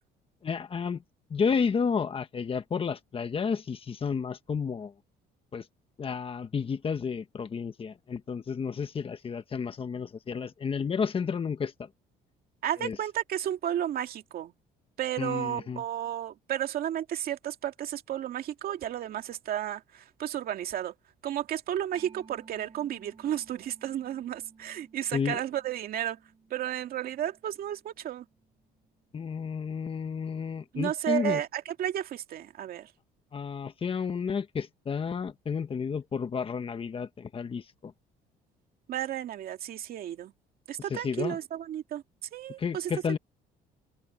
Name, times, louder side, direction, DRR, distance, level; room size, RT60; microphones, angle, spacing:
voice 1, 0.4-1.0 1.3-4.9 5.5-5.6 6.0-11.9 12.8-13.0 15.2-15.8 25.1-25.4 29.1-31.4 33.3-37.9 40.9-41.4 42.6-43.2, left 6 dB, 35° left, 1.4 m, -31 dB
voice 2, 12.6-14.5 15.0-20.9 21.2-26.2 26.5-28.3 30.7-32.9 38.9-40.3 40.7-42.0 42.3-42.9, right 11 dB, 60° right, 2.3 m, -33 dB
Mallet percussion, 21.9-29.2, right 5 dB, 30° right, 6.1 m, -57 dB
cardioid pair, 110°, 17 cm